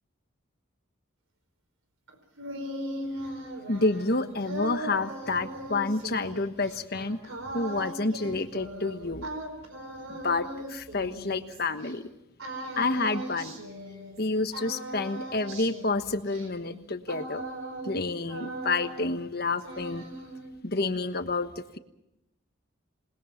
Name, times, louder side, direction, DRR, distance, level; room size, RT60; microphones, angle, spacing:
sound 1, 2.1-11.9 12.4-14.3 14.5-18.0 18.3-19.3 19.6-20.6, right 1 dB, 85° right, 4.8 m, -39 dB
voice 1, 3.7-7.2 7.5-9.2 10.1-12.1 12.8-13.6 14.2-17.4 17.8-20.0 20.6-21.8, left 3 dB, 50° left, 9 dB, 1.3 m, -29 dB
27.5 x 20.5 x 5.8 m, 0.87 s
head